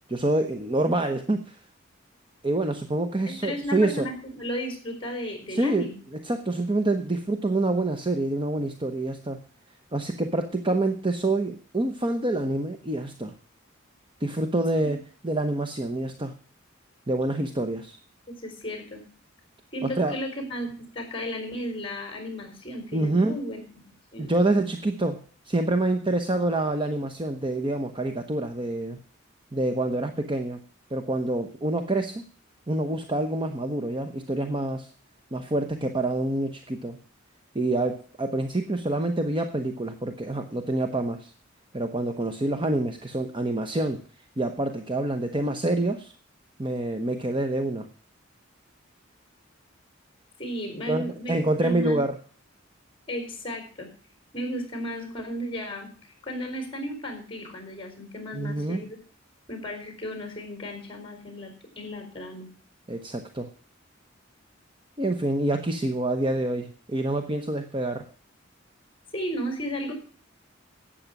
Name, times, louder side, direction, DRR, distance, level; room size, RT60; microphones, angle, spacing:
voice 1, 0.1-1.6 2.4-4.1 5.5-5.9 6.2-9.4 9.9-13.3 14.2-16.3 17.1-18.0 19.8-20.2 22.9-23.4 24.2-25.2 25.4-29.0 29.5-30.6 30.9-32.2 32.7-34.9 35.3-37.0 37.5-41.3 41.7-44.0 44.4-46.1 46.6-47.9 50.9-52.2 58.3-58.8 62.9-63.5 65.0-68.0, right 2 dB, 25° right, 6 dB, 0.9 m, -27 dB
voice 2, 3.3-5.9 14.8-14.9 18.3-19.0 19.7-23.6 24.1-24.4 50.4-51.3 51.6-52.0 53.1-53.9 54.3-55.9 56.2-59.0 59.5-62.5 69.1-69.9, equal, 25° left, 5 dB, 4.7 m, -34 dB
12.0 x 8.7 x 6.0 m, 0.42 s
head